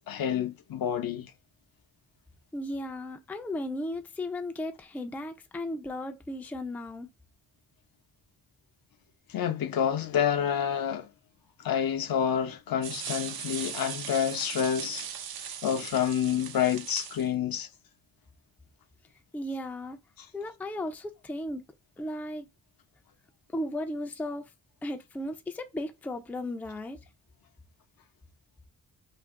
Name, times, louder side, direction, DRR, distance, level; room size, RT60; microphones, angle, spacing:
voice 1, 0.1-1.3 9.3-11.1 11.6-15.1 15.6-17.7, left 9 dB, 70° left, 0.6 m, -28 dB
voice 2, 2.5-7.1 19.3-20.0 20.3-21.6 22.0-22.5 23.5-24.5 24.8-27.0, left 1 dB, 5° left, 0.3 m, -35 dB
sound 1, 12.8-17.3, right 8 dB, 75° right, 0.6 m, -39 dB
2.6 x 2.5 x 3.5 m
cardioid pair, 105°, 37 cm